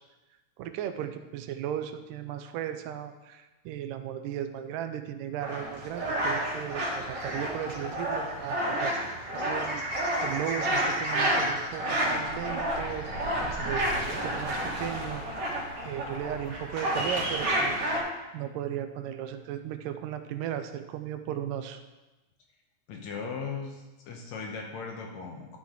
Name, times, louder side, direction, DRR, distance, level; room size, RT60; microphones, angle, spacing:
voice 1, 0.6-15.2 15.8-18.0 18.3-21.8, right 10 dB, 85° right, 8 dB, 2.2 m, -36 dB
sound 1, 5.4-18.0, right 1 dB, 50° right, 2.8 m, -30 dB
voice 2, 22.9-25.6, left 5 dB, 65° left, 1 dB, 2.0 m, -38 dB
12.5 x 5.9 x 3.8 m, 1.1 s
omnidirectional pair, 3.8 m